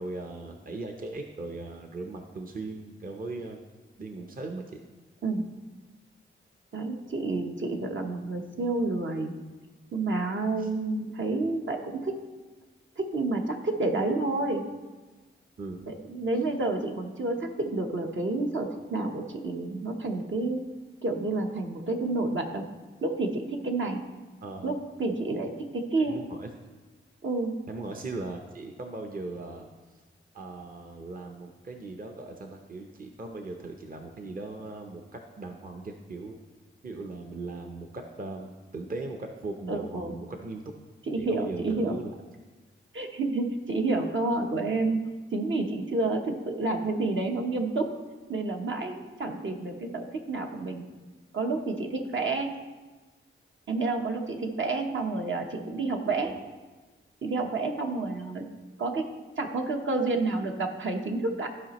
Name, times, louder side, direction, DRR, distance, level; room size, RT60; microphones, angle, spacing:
voice 1, 0.0-3.6 4.0-4.8 10.6-10.7 15.6-15.9 24.4-24.8 26.0-26.5 27.7-30.0 30.3-36.4 36.8-40.6 41.2-42.1 56.2-56.4, right 3 dB, 45° right, 3 dB, 0.7 m, -39 dB
voice 2, 6.7-9.3 9.9-12.2 13.0-14.6 15.9-20.6 21.0-22.6 23.0-24.0 24.6-26.2 27.2-27.5 39.7-40.1 41.1-42.0 42.9-45.0 45.3-47.9 48.3-50.8 51.3-52.5 53.7-56.3 57.2-58.5 58.8-59.1 59.4-61.5, right 3 dB, 65° right, 2 dB, 1.1 m, -29 dB
14.5 x 5.0 x 3.0 m, 1.3 s
cardioid pair, 70°, 21 cm